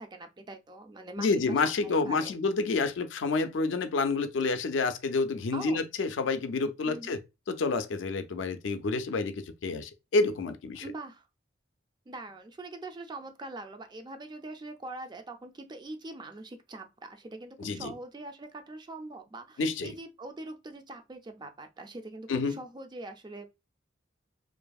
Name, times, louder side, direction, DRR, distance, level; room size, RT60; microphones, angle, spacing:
voice 1, 0.0-2.3 5.5-5.8 6.8-7.2 10.8-11.3 12.1-23.5, right 2 dB, 25° right, 0.4 m, -43 dB
voice 2, 1.2-7.2 7.5-10.9 17.6-17.9 19.6-19.9 22.3-22.6, left 3 dB, 70° left, 0.4 m, -29 dB
2.6 x 2.5 x 2.3 m
head